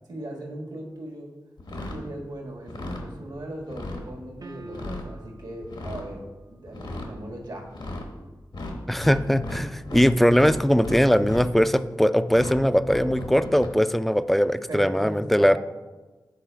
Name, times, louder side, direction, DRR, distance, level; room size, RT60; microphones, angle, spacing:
voice 1, 0.1-1.3 1.9-7.9 14.7-15.6, right 1 dB, 70° right, 1 dB, 1.5 m, -38 dB
sound 1, 1.6-2.0 2.6-3.0 3.6-4.0 4.6-5.1 5.6-6.0 6.7-7.1 7.7-8.1 8.5-10.1 10.3-11.5 12.3-12.5 12.8-13.7, left 2 dB, 80° left, 1.1 m, -35 dB
sound 2, 4.4-5.5, right 2 dB, 50° right, 0.5 m, -44 dB
voice 2, 8.9-15.6, equal, ahead, 13 dB, 0.3 m, -20 dB
7.5 x 4.1 x 4.5 m, 1.2 s
cardioid pair, 50°, 8 cm